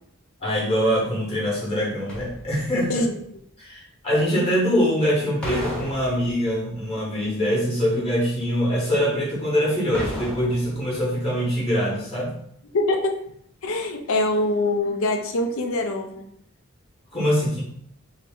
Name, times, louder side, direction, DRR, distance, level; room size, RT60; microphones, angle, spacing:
voice 1, 0.4-3.0 3.6-12.3 17.1-17.6, equal, 25° left, -5 dB, 1.0 m, -23 dB
metal thuds kicks resonant, 2.1-2.9 5.4-6.7 9.9-11.0 11.3-11.4, equal, 5° left, 0.7 m, -34 dB
voice 2, 12.7-13.1 13.6-16.2, left 2 dB, 70° left, 4 dB, 0.5 m, -24 dB
3.0 x 2.8 x 3.5 m, 0.68 s
head